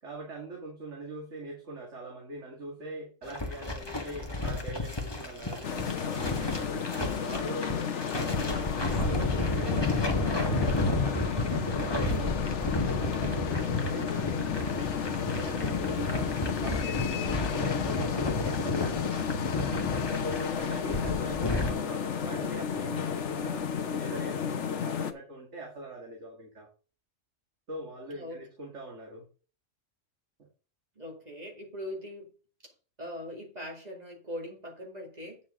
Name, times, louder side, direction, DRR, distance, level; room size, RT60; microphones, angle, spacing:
voice 1, 0.0-6.9 7.2-8.6 8.9-11.4 11.8-14.9 15.3-19.4 19.9-23.7 24.0-26.7 27.7-29.3, right 1 dB, 65° right, 2.4 m, -42 dB
sound 1, 3.2-21.7, left 2 dB, 20° left, 1.5 m, -32 dB
sound 2, 5.6-25.1, left 7 dB, 65° left, 1.2 m, -32 dB
voice 2, 28.1-28.4 31.0-32.3 32.6-32.7 33.0-35.4, equal, 30° right, 2.4 m, -41 dB
8.7 x 6.9 x 3.8 m
omnidirectional pair, 1.3 m